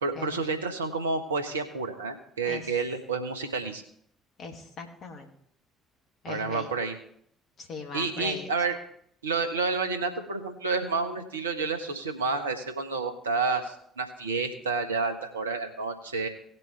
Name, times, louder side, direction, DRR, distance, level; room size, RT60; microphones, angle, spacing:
voice 1, 0.0-3.8 6.3-6.9 7.9-8.7 9.2-16.3, right 4 dB, 85° right, 6 dB, 1.2 m, -30 dB
voice 2, 4.4-5.3 6.2-6.7 7.6-8.5, left 4 dB, 50° left, 2 dB, 2.3 m, -39 dB
18.0 x 7.6 x 3.3 m, 0.68 s
figure-of-eight pair, 55°, 0 cm